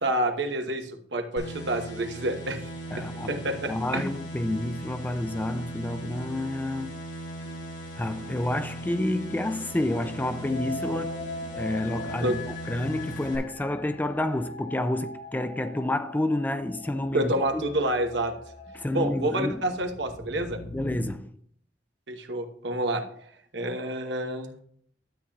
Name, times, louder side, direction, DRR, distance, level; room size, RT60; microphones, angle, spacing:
voice 1, 0.0-2.6 3.0-4.0 12.2-12.4 17.1-18.3 18.9-20.6 22.1-23.0 23.5-24.6, right 1 dB, 80° right, 1.0 m, -28 dB
sound 1, 1.4-13.4, right 1 dB, 75° left, 3.4 m, -39 dB
voice 2, 2.9-3.3 3.7-7.0 8.0-11.2 11.5-17.7 18.7-19.6 20.7-21.3, left 1 dB, 10° left, 0.4 m, -29 dB
sound 2, 7.4-21.1, left 1 dB, 40° left, 0.8 m, -42 dB
12.5 x 8.5 x 2.4 m
head